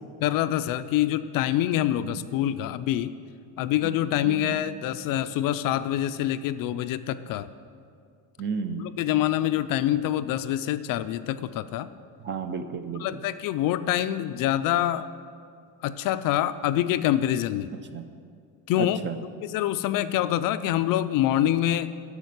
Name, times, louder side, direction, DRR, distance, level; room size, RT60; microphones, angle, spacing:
voice 1, 0.2-3.1 3.6-7.5 8.8-11.9 13.0-15.1 15.8-17.7 18.7-19.0 19.4-22.0, left 12 dB, 55° left, 12 dB, 0.5 m, -25 dB
voice 2, 4.2-4.6 8.4-8.9 12.2-13.0 17.9-18.0 18.8-19.2, right 5 dB, 25° right, 9 dB, 0.6 m, -33 dB
11.0 x 7.4 x 9.5 m, 2.3 s
cardioid pair, 155°, 42 cm